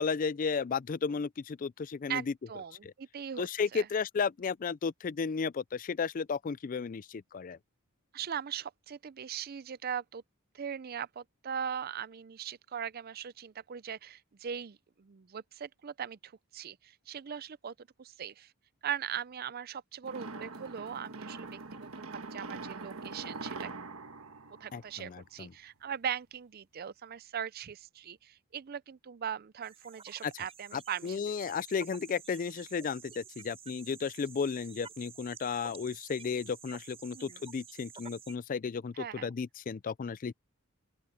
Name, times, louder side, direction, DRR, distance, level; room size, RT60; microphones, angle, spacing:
voice 1, 0.0-2.3 2.8-2.9 3.4-7.6 24.7-25.5 30.2-30.4 30.7-40.3, left 5 dB, 40° left, 0.4 m, -34 dB
voice 2, 2.1-3.9 8.1-10.2 10.5-18.5 18.8-23.7 24.6-31.2 37.1-37.4 38.9-39.3, right 8 dB, 45° right, 0.4 m, -40 dB
sound 1, 20.0-25.4, right 3 dB, 75° right, 1.4 m, -43 dB
sound 2, 29.6-38.4, right 6 dB, 25° right, 5.5 m, -51 dB
open air
head